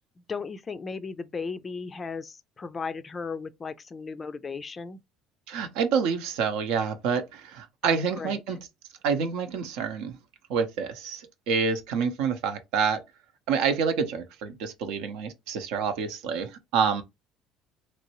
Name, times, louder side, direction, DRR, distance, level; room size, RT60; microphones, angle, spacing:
voice 1, 0.3-5.0 7.8-8.4, left 4 dB, 30° left, 0.3 m, -36 dB
voice 2, 5.5-8.7 9.0-10.2 10.5-13.0 13.5-17.0, right 6 dB, 80° right, 0.7 m, -27 dB
3.0 x 2.6 x 2.9 m
cardioid pair, 110°, 0 cm